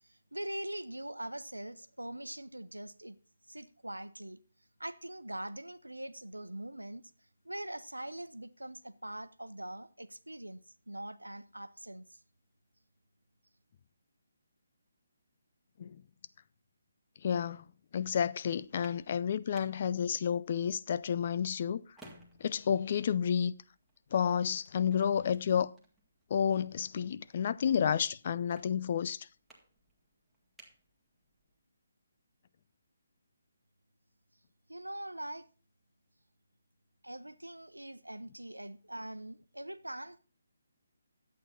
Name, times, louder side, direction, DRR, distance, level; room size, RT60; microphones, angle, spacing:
voice 1, 0.1-3.2 3.5-4.4 4.8-7.1 7.4-12.1 34.7-35.4 37.0-40.2, right 1 dB, 90° right, 0.8 m, -42 dB
voice 2, 17.2-17.6 17.9-21.8 22.4-23.5 24.1-25.7 26.3-29.3, left 8 dB, 40° left, 0.4 m, -30 dB
sound 1, 18.5-31.6, right 1 dB, 5° right, 1.7 m, -63 dB
11.0 x 8.5 x 4.1 m
figure-of-eight pair, 145°, 0 cm